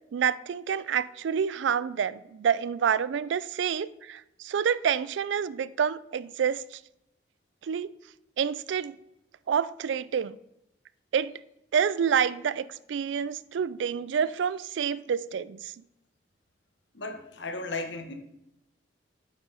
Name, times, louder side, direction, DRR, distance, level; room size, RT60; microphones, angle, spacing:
voice 1, 0.1-6.8 7.6-7.9 8.4-9.0 9.5-10.4 11.1-11.3 11.7-15.7, right 7 dB, 80° right, 0.3 m, -28 dB
voice 2, 16.9-18.1, left 3 dB, 75° left, 1.1 m, -35 dB
8.5 x 6.8 x 3.9 m
head